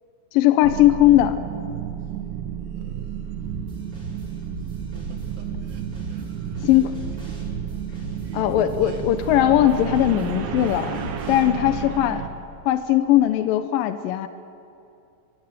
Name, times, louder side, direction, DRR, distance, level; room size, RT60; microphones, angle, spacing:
voice 1, 0.3-1.4 6.6-6.9 8.3-12.2 12.7-14.3, left 13 dB, 85° left, 10 dB, 2.5 m, -19 dB
sound 1, 0.6-12.3, right 9 dB, 90° right, 3.1 m, -32 dB
voice 2, 2.8-3.1 4.7-7.5 8.0-9.3 11.7-12.0, right 5 dB, 60° right, 5 dB, 3.1 m, -43 dB
sound 2, 3.4-11.4, equal, 40° right, 6.1 m, -39 dB
25.5 x 16.0 x 9.2 m, 2.6 s
omnidirectional pair, 4.0 m